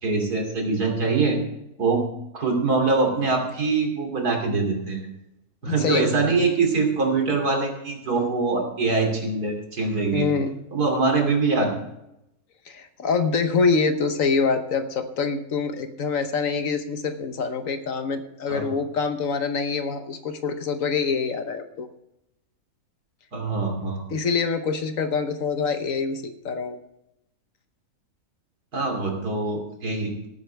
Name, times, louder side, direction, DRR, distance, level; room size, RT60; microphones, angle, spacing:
voice 1, 0.0-1.4 1.8-2.1 2.3-5.0 5.6-10.3 10.7-11.7 18.5-18.7 23.3-24.0 28.7-30.1, right 3 dB, 80° right, 2 dB, 3.3 m, -23 dB
voice 2, 5.6-6.0 10.1-10.5 12.7-21.9 24.1-26.8, left 5 dB, 60° left, 8 dB, 1.3 m, -25 dB
18.0 x 9.4 x 3.4 m, 0.85 s
omnidirectional pair, 1.6 m